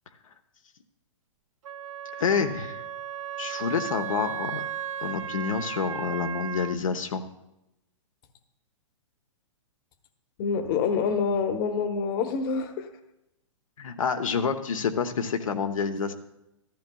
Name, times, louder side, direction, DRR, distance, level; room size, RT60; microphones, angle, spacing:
Wind instrument woodwind instrument, 1.6-6.8, right 10 dB, 75° right, 0.5 m, -35 dB
voice 1, 2.2-2.8 3.4-4.7 5.0-7.2 13.8-16.1, left 6 dB, 85° left, 6 dB, 1.0 m, -28 dB
voice 2, 10.4-12.9, left 5 dB, 45° left, 7 dB, 1.1 m, -26 dB
14.0 x 13.5 x 2.3 m, 0.87 s
hypercardioid pair, 130°, 17 cm